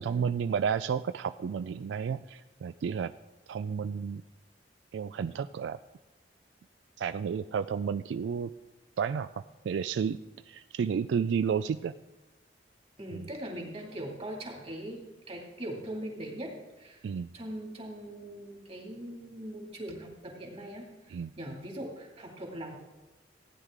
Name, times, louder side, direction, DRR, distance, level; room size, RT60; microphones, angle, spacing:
voice 1, 0.0-3.1 3.5-4.2 4.9-5.8 7.0-8.5 9.0-10.2 10.5-11.9 13.1-13.2 17.0-17.3 21.1-21.3, right 7 dB, 85° right, 12 dB, 0.3 m, -31 dB
voice 2, 13.0-17.0 17.3-22.7, right 1 dB, 35° right, 0 dB, 2.3 m, -41 dB
15.0 x 9.8 x 3.7 m, 1.1 s
head